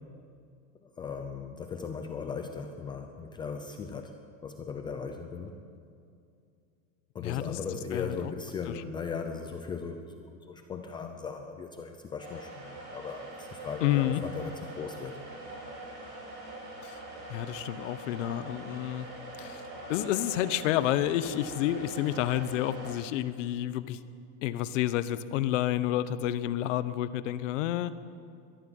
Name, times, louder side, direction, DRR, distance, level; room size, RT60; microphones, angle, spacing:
voice 1, 0.8-4.1 4.4-5.6 7.1-15.2, left 5 dB, 10° left, 5 dB, 0.5 m, -38 dB
voice 2, 7.2-7.5 7.9-8.2 8.7-8.8 13.8-14.2 16.8-17.0 17.3-19.1 19.4-19.6 19.9-24.0 24.4-28.0, left 13 dB, 65° left, 13 dB, 1.1 m, -29 dB
sound 1, 12.2-22.9, right 1 dB, 40° right, 7.7 m, -43 dB
22.5 x 14.0 x 9.1 m, 2.4 s
supercardioid pair, 180°, 40 cm